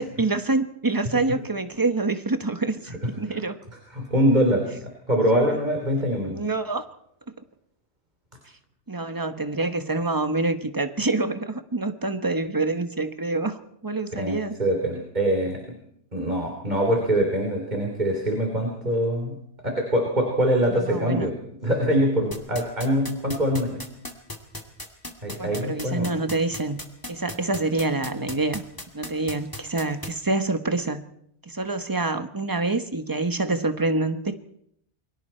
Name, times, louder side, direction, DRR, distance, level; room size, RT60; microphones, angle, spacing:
voice 1, 0.0-3.6 5.3-5.6 6.3-6.8 8.9-13.6 13.8-14.6 20.7-21.3 25.4-26.8 27.1-28.6 28.9-31.0 31.4-34.4, right 3 dB, 20° right, 9 dB, 1.1 m, -26 dB
voice 2, 3.9-4.7 5.1-6.4 14.2-15.6 16.1-19.4 19.6-21.3 21.6-23.8 25.2-26.1, equal, 40° right, 1 dB, 3.5 m, -23 dB
sound 1, 22.3-30.1, left 1 dB, 20° left, 2.2 m, -35 dB
29.0 x 23.0 x 4.4 m, 0.72 s
omnidirectional pair, 1.2 m